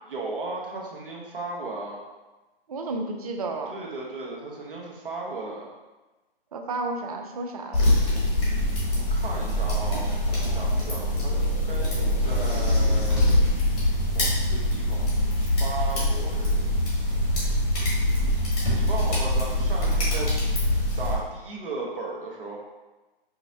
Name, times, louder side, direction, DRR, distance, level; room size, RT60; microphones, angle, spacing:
voice 1, 0.1-2.0 3.7-5.7 8.3-13.5 14.1-15.3 15.6-17.2 18.7-20.3 21.0-22.6, right 3 dB, 65° right, -2 dB, 0.9 m, -36 dB
voice 2, 2.7-3.8 6.5-7.9, right 2 dB, 40° right, 3 dB, 0.4 m, -32 dB
sound 1, 7.7-21.1, left 1 dB, 40° left, 1.3 m, -24 dB
4.7 x 2.0 x 2.7 m, 1.1 s
figure-of-eight pair, 140°, 29 cm